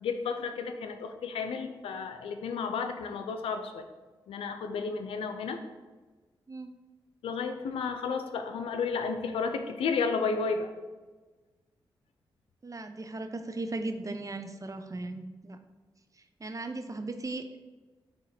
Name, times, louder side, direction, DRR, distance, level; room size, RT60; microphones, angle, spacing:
voice 1, 0.0-3.9 4.3-5.6 7.2-10.7, left 5 dB, 85° left, 7 dB, 0.5 m, -32 dB
voice 2, 12.6-15.6 16.4-17.6, right 2 dB, 35° right, 7 dB, 0.7 m, -37 dB
8.9 x 3.0 x 4.3 m, 1.3 s
supercardioid pair, 45°, 9 cm